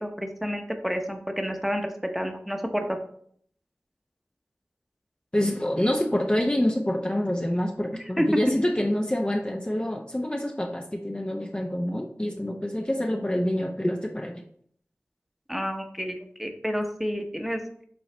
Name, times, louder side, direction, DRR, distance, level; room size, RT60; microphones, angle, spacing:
voice 1, 0.0-3.0 8.2-8.4 15.5-17.6, equal, 5° right, 4 dB, 0.9 m, -29 dB
voice 2, 5.3-14.4, left 1 dB, 20° left, 2 dB, 0.6 m, -27 dB
7.7 x 3.8 x 3.3 m, 0.64 s
wide cardioid pair, 55°, 5 cm